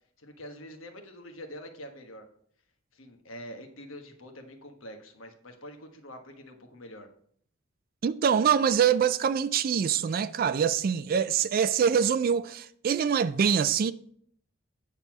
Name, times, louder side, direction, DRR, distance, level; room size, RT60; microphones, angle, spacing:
voice 1, 0.2-2.3 2.9-7.1, equal, 80° left, 1.3 m, -45 dB
voice 2, 8.0-13.9, right 7 dB, 45° right, 0.3 m, -24 dB
9.0 x 4.1 x 5.9 m
head